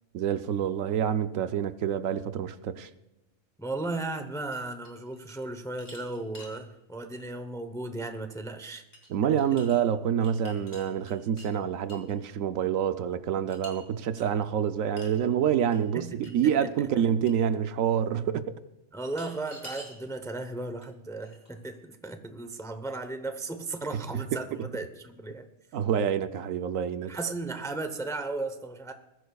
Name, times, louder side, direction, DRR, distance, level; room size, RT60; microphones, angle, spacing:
voice 1, 0.1-2.9 9.1-18.5 23.9-24.2 24.5-24.7 25.7-27.1, right 8 dB, 80° right, 1.1 m, -27 dB
voice 2, 3.6-8.8 15.9-16.3 18.9-25.5 27.1-28.9, right 2 dB, 5° left, 0.6 m, -35 dB
sound 1, 4.5-5.4 5.7-6.6 7.1-7.3 8.9-9.1 9.4-9.8 10.2-11.5 11.9-12.1 13.5-13.7 14.2-14.3 15.0-15.2 15.7-15.8 16.2-16.3 16.7-16.8 17.3-17.4 19.0-20.0 20.8-20.9 21.2-21.8, equal, 15° right, 3.4 m, -48 dB
21.0 x 15.0 x 2.3 m
omnidirectional pair, 1.4 m